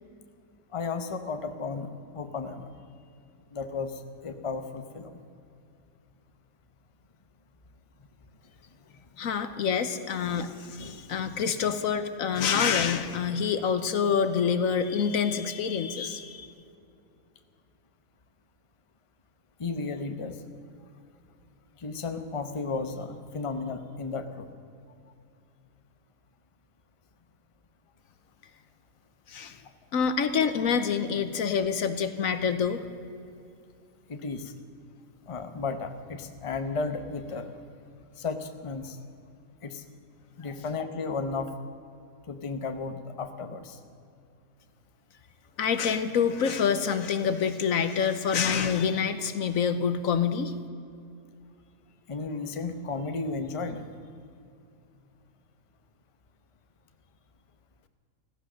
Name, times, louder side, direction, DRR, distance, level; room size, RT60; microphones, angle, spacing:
voice 1, 0.7-2.7 3.5-5.2 9.2-9.3 10.2-10.4 10.8-11.2 12.4-12.5 19.6-20.4 21.8-24.5 34.1-34.5 35.3-37.5 38.2-39.0 39.6-39.8 40.4-41.5 42.3-43.8 52.1-53.8, left 4 dB, 25° left, 7 dB, 0.8 m, -34 dB
voice 2, 9.2-16.5 29.3-29.6 29.9-32.8 45.6-50.5, left 6 dB, 70° left, 10 dB, 1.2 m, -27 dB
16.0 x 14.5 x 6.3 m, 2.5 s
omnidirectional pair, 1.5 m